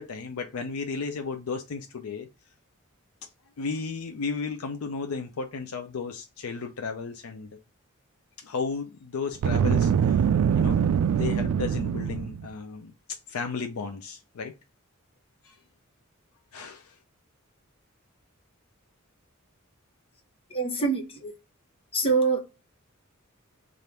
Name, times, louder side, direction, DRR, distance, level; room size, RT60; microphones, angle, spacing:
voice 1, 0.0-2.3 3.2-3.3 3.6-7.6 8.4-10.3 10.6-10.8 11.1-14.5 15.4-15.6 16.5-17.0, left 5 dB, 80° left, 0.5 m, -34 dB
Boom, 9.3-12.5, right 7 dB, 85° right, 0.3 m, -23 dB
voice 2, 20.5-21.3 21.9-22.4, right 4 dB, 25° left, 1.1 m, -25 dB
3.4 x 2.5 x 4.2 m
head